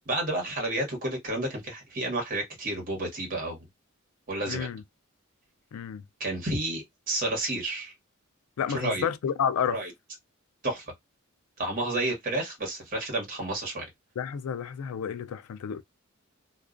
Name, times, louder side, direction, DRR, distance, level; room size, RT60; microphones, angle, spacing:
voice 1, 0.1-3.6 4.3-4.7 6.2-7.9 8.7-9.0 9.7-9.9 10.6-10.9 11.6-13.9, right 2 dB, 40° right, 1.1 m, -31 dB
voice 2, 4.5-4.8 5.7-6.0 8.6-9.8 14.2-15.8, left 7 dB, 80° left, 0.3 m, -30 dB
2.3 x 2.2 x 2.4 m
head